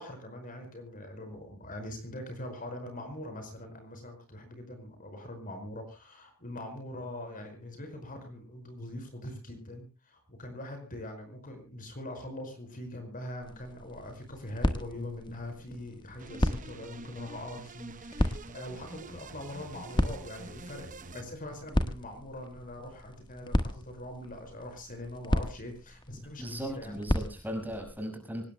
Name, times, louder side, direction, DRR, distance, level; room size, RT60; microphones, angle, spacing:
voice 1, 0.0-27.0, left 1 dB, 40° left, 6 dB, 5.2 m, -42 dB
sound 1, 13.4-27.9, equal, 20° left, 1.3 m, -35 dB
sound 2, 16.2-21.2, right 3 dB, 40° right, 1.0 m, -46 dB
voice 2, 26.4-28.5, equal, 10° right, 3 dB, 5.8 m, -37 dB
25.0 x 19.5 x 2.2 m, 0.33 s
head